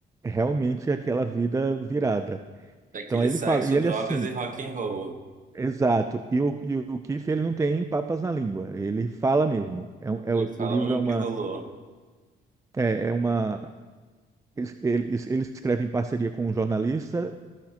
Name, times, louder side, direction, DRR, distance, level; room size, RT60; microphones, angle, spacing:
voice 1, 0.2-2.4 3.1-4.3 5.5-11.3 12.7-13.6 14.6-17.4, right 3 dB, 15° right, 8 dB, 0.3 m, -26 dB
voice 2, 2.9-5.2 10.3-11.7, right 4 dB, 40° right, 6 dB, 1.1 m, -32 dB
15.0 x 5.8 x 2.9 m, 1.4 s
cardioid pair, 90°, 20 cm